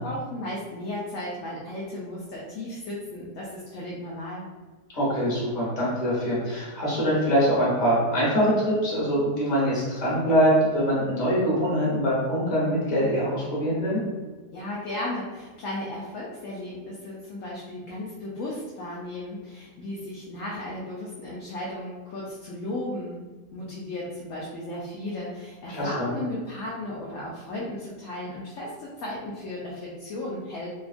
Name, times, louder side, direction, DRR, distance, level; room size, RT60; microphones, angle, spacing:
voice 1, 0.0-4.4 14.5-23.2 23.5-30.7, left 1 dB, 70° left, -5 dB, 0.7 m, -35 dB
voice 2, 4.9-14.0 25.7-26.1, equal, 30° left, -8 dB, 0.9 m, -23 dB
2.8 x 2.3 x 2.4 m, 1.3 s
omnidirectional pair, 1.8 m